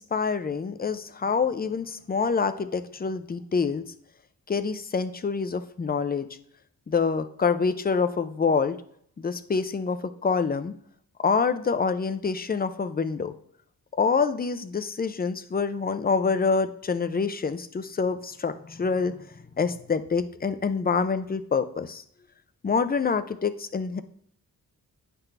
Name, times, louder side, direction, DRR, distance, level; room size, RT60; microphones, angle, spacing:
voice 1, 0.0-3.8 4.5-6.3 6.9-8.8 9.2-10.7 11.2-13.3 14.0-19.2 19.6-22.0 22.6-24.0, left 5 dB, 25° left, 11 dB, 0.5 m, -26 dB
8.7 x 6.0 x 3.3 m, 0.67 s
wide cardioid pair, 135°, 36 cm